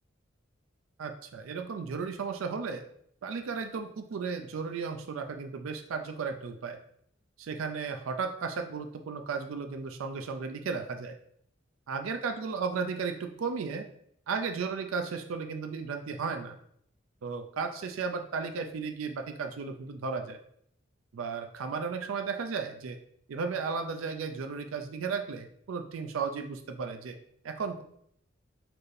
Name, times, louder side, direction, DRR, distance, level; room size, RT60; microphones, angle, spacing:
voice 1, 1.0-2.8 3.2-6.8 7.4-11.2 11.9-13.9 14.3-16.6 17.2-20.4 21.1-23.0 23.3-27.2 27.4-27.8, right 5 dB, 85° right, 6 dB, 0.4 m, -34 dB
4.3 x 2.6 x 3.3 m, 0.67 s
head